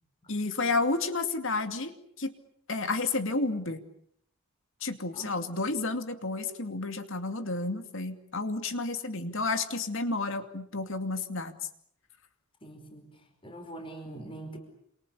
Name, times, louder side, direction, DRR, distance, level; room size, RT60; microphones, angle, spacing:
voice 1, 0.3-1.9 2.2-2.3 2.7-3.8 4.8-11.5, left 3 dB, 60° left, 8 dB, 2.5 m, -31 dB
voice 2, 12.6-13.1 13.4-14.6, right 1 dB, 25° left, 5 dB, 5.1 m, -43 dB
28.5 x 28.0 x 6.9 m, 0.69 s
head